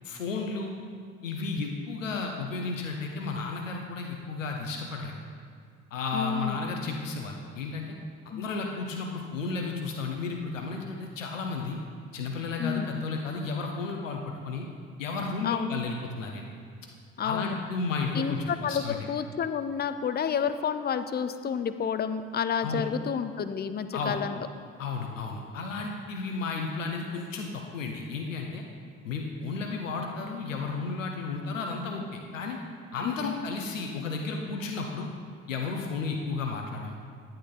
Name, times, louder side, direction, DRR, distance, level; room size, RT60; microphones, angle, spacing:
voice 1, 0.0-0.7 1.2-5.2 5.9-8.0 8.2-11.8 12.1-14.7 15.0-16.5 17.2-19.1 22.6-22.8 23.9-24.2 24.8-28.6 29.0-32.6 32.9-35.1 35.5-36.9, left 4 dB, 85° left, 2 dB, 0.9 m, -33 dB
voice 2, 6.1-6.6 8.3-8.5 12.6-12.9 15.4-15.7 17.2-17.5 18.1-18.8 19.1-24.4 33.0-33.3, left 7 dB, 25° left, 10 dB, 0.6 m, -30 dB
10.0 x 8.8 x 3.9 m, 2.2 s
figure-of-eight pair, 50°, 37 cm